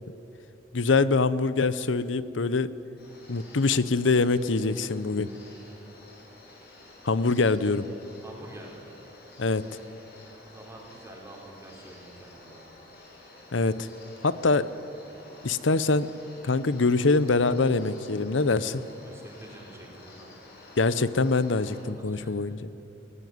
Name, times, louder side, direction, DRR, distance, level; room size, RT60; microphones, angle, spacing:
voice 1, 0.7-2.7 3.3-5.3 7.0-7.9 9.4-9.6 13.5-13.9 14.2-14.7 15.4-16.1 16.4-18.8 20.8-22.7, left 3 dB, 70° left, 16 dB, 0.8 m, -24 dB
sound 1, 3.0-21.8, left 2 dB, 55° left, 6.8 m, -51 dB
voice 2, 8.2-8.9 10.5-12.7 19.0-20.3 22.0-22.5, right 1 dB, 15° right, -1 dB, 4.1 m, -47 dB
21.0 x 17.0 x 9.6 m, 3.0 s
head